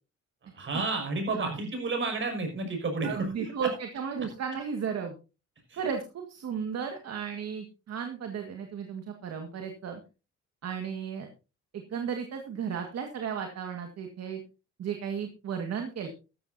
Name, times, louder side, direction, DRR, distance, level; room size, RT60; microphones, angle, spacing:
voice 1, 0.5-3.5 5.7-5.8, right 3 dB, 40° right, 4 dB, 5.7 m, -31 dB
voice 2, 3.0-5.1 5.7-10.0 10.6-11.3 11.7-14.4 14.8-16.1, right 7 dB, 60° right, 4 dB, 1.9 m, -34 dB
14.5 x 13.5 x 2.8 m, 0.32 s
cardioid pair, 125°, 29 cm